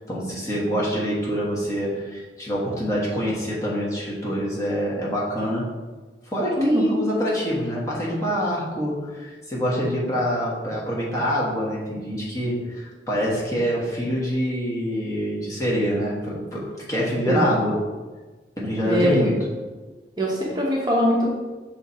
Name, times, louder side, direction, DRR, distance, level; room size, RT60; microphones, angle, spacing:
voice 1, 0.1-5.7 6.3-17.8 18.6-19.5, equal, 20° left, -5 dB, 1.3 m, -25 dB
voice 2, 18.8-19.3 20.2-21.3, equal, 25° right, -4 dB, 0.9 m, -22 dB
5.8 x 4.2 x 4.2 m, 1.3 s
head